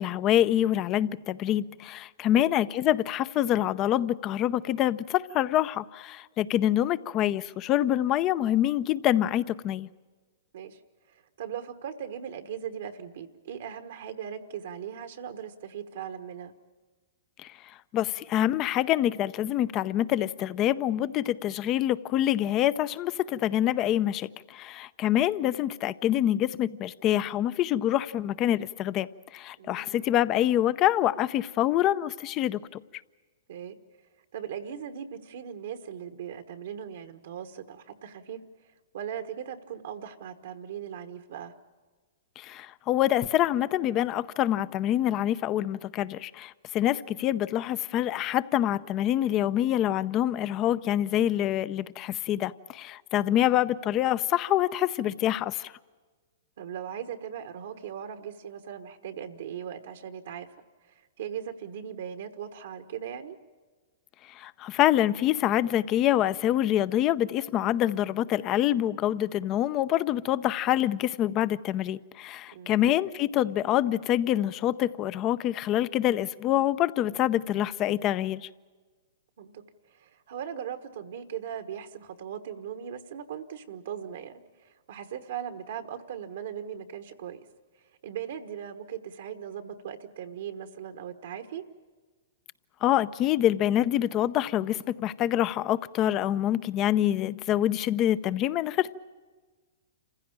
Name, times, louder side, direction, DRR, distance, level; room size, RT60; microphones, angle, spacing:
voice 1, 0.0-9.9 17.4-17.5 17.9-29.1 29.3-32.8 42.4-55.7 64.4-78.5 92.8-98.9, left 12 dB, 35° left, 0.6 m, -26 dB
voice 2, 11.1-16.5 29.6-30.1 33.5-33.7 34.3-41.5 53.2-53.4 56.6-60.5 60.9-63.4 72.5-72.9 79.4-87.4 88.0-91.6, right 9 dB, 70° right, 1.3 m, -39 dB
27.5 x 15.5 x 8.9 m
hypercardioid pair, 125°, 0 cm